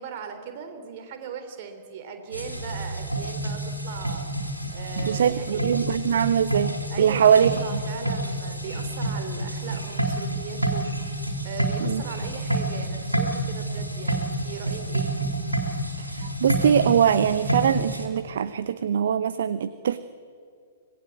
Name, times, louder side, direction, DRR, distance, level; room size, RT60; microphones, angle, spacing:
voice 1, 0.0-5.8 6.9-15.1, right 6 dB, 40° right, 5 dB, 3.5 m, -39 dB
sound 1, 2.3-18.1, right 1 dB, 90° right, 3.8 m, -29 dB
voice 2, 5.0-7.5 11.8-12.0 16.0-20.0, right 8 dB, 55° right, 14 dB, 0.7 m, -22 dB
25.5 x 19.5 x 8.2 m, 2.2 s
figure-of-eight pair, 110°, 0 cm